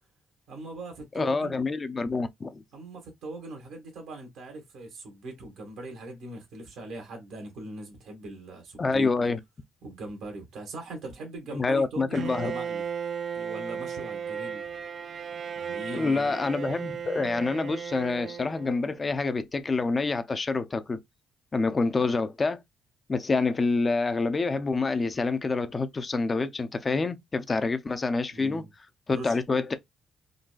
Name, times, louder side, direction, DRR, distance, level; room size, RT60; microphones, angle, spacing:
voice 1, 0.5-1.5 2.7-9.1 9.8-12.8 13.3-14.6 15.5-16.4 28.3-28.7 29.1-29.4, right 2 dB, 85° right, 1.3 m, -40 dB
voice 2, 1.1-2.6 8.8-9.4 11.5-12.5 15.9-21.0 21.5-22.6 23.1-28.7 29.1-29.7, left 3 dB, 30° left, 0.5 m, -27 dB
Bowed string instrument, 12.1-19.1, right 7 dB, 55° right, 0.3 m, -35 dB
3.9 x 2.2 x 2.3 m
cardioid pair, 90°, 0 cm